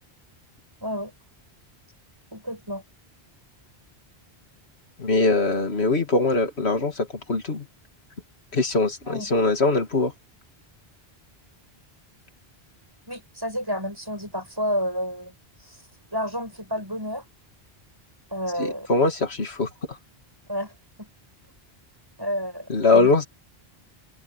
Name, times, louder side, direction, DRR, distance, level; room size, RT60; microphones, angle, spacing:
voice 1, 2.3-2.8 9.1-9.3 13.1-17.3 18.3-18.9 20.5-21.1 22.2-23.1, equal, 20° right, 7.3 m, -31 dB
voice 2, 5.0-7.7 8.5-10.1 18.6-20.0 22.7-23.3, left 3 dB, 90° left, 2.7 m, -22 dB
omnidirectional pair, 1.1 m